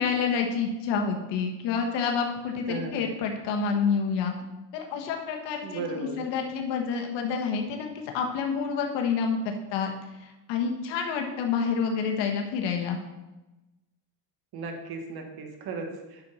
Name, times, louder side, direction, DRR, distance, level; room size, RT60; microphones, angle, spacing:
voice 1, 0.0-4.3 4.7-9.9 10.2-13.0, left 6 dB, 80° left, 2 dB, 1.4 m, -28 dB
voice 2, 2.7-3.0 5.6-6.2 14.5-16.2, right 4 dB, 60° right, 3 dB, 1.7 m, -36 dB
9.5 x 6.3 x 4.2 m, 1.0 s
cardioid pair, 125°, 42 cm